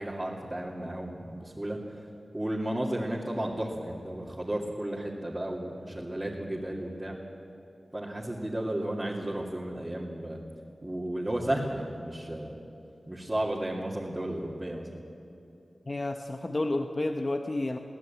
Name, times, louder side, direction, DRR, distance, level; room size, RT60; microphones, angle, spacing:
voice 1, 0.0-2.0 2.3-7.2 7.9-10.4 10.8-12.5 13.1-14.9, right 1 dB, 15° right, -4 dB, 2.5 m, -33 dB
voice 2, 15.9-17.8, left 2 dB, 35° left, 5 dB, 1.0 m, -30 dB
22.5 x 17.0 x 8.7 m, 2.8 s
wide cardioid pair, 90°, 0 cm